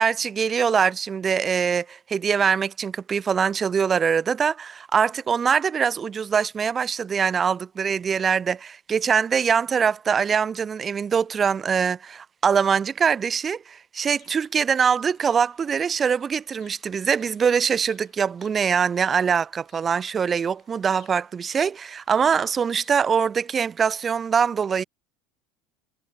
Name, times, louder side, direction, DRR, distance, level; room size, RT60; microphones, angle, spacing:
voice 1, 0.0-24.8, right 6 dB, 30° right, 0.5 m, -23 dB
Bird vocalization bird call bird song, 14.1-23.2, left 18 dB, 60° left, 4.6 m, -61 dB
hypercardioid pair, 80°, 0 cm